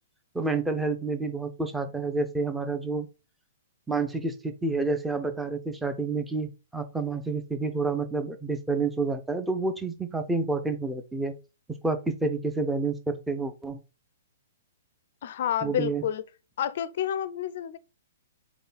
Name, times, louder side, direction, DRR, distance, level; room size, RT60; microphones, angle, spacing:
voice 1, 0.3-3.1 3.9-11.3 11.7-13.8 15.6-16.0, right 3 dB, 5° right, 0.6 m, -29 dB
voice 2, 15.2-16.2 16.6-17.8, left 10 dB, 55° left, 0.5 m, -29 dB
4.0 x 3.3 x 4.0 m
hypercardioid pair, 125°, 0 cm